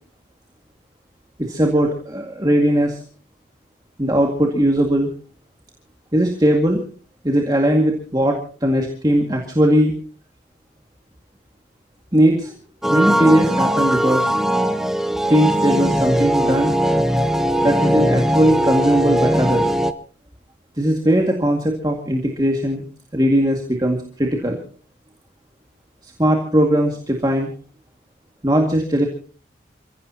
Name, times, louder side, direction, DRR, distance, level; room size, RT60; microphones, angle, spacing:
voice 1, 1.4-3.0 4.0-5.1 6.1-6.8 7.2-9.9 12.1-12.5 12.9-14.2 15.3-16.7 17.6-19.7 20.8-22.9 23.1-24.6 26.0-27.5 28.4-29.1, equal, 20° right, 1 dB, 2.1 m, -19 dB
sound 1, 12.8-19.9, equal, ahead, 0.7 m, -19 dB
28.5 x 16.5 x 2.9 m, 0.40 s
head